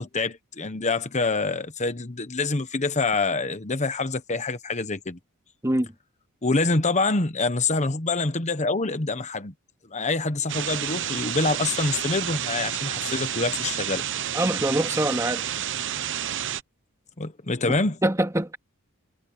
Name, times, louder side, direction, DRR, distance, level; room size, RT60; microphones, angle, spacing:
voice 1, 0.0-5.2 6.4-9.5 9.9-14.0 17.2-18.0, left 3 dB, 30° left, 1.1 m, -26 dB
sound 1, 10.5-16.6, right 10 dB, 55° right, 0.8 m, -30 dB
voice 2, 14.3-15.4 17.6-17.8 18.0-18.6, right 1 dB, 15° right, 2.3 m, -24 dB
head